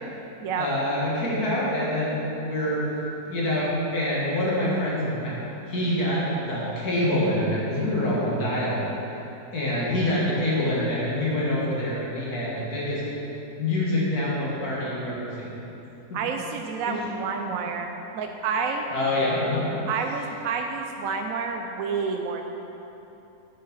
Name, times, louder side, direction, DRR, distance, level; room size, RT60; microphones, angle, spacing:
voice 1, 0.6-2.9 3.3-9.2 9.5-13.0 13.6-15.6 16.1-16.2 16.9-17.0 18.9-19.7, left 1 dB, 70° left, -6 dB, 2.5 m, -26 dB
voice 2, 16.1-18.9 19.9-22.4, right 5 dB, 65° right, 4 dB, 1.0 m, -29 dB
8.6 x 8.4 x 5.7 m, 3.0 s
omnidirectional pair, 1.6 m